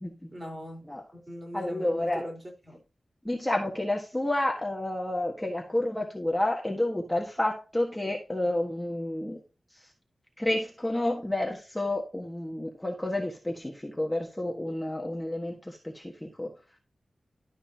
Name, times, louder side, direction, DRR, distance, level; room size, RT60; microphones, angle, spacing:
voice 1, 0.3-0.9 1.3-2.8, equal, 30° right, 3.9 m, -40 dB
voice 2, 1.5-2.2 3.2-9.4 10.4-16.5, left 1 dB, 10° left, 1.4 m, -30 dB
12.0 x 5.5 x 2.8 m
wide cardioid pair, 80°, 0 cm